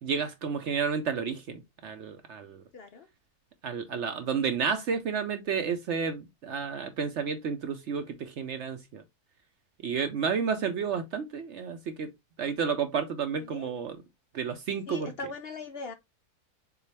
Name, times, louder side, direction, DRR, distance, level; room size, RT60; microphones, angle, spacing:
voice 1, 0.0-2.6 3.6-9.0 9.8-12.1 12.4-14.0 14.3-15.1, right 6 dB, 60° right, 0.8 m, -31 dB
voice 2, 2.7-3.1 13.4-13.7 14.9-15.9, left 3 dB, 60° left, 0.6 m, -40 dB
6.8 x 2.4 x 3.2 m
omnidirectional pair, 1.6 m